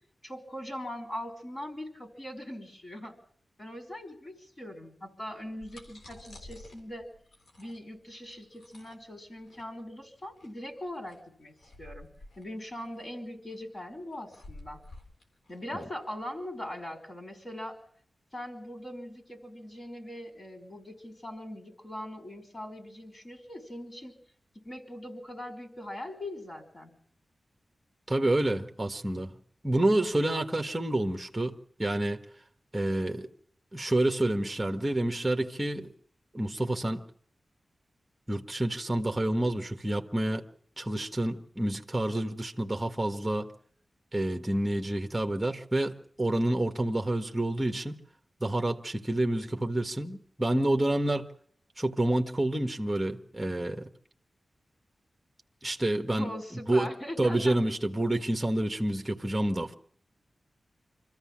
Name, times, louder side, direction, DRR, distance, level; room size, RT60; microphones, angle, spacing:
voice 1, 0.2-3.1 3.6-7.1 7.6-12.1 12.4-14.8 15.5-17.8 18.3-24.2 24.5-26.9 56.1-57.6, left 1 dB, 40° left, 5.1 m, -41 dB
sound 1, 5.3-16.7, left 2 dB, 85° left, 3.8 m, -52 dB
voice 2, 28.1-29.3 29.6-31.5 31.8-32.2 32.7-33.3 33.7-35.9 36.3-37.1 38.3-40.4 40.8-43.5 44.1-48.0 48.4-51.3 51.8-53.9 55.6-56.3 56.7-56.9 57.2-59.7, right 1 dB, 10° right, 1.5 m, -28 dB
25.0 x 14.0 x 7.4 m
wide cardioid pair, 95°, 0 cm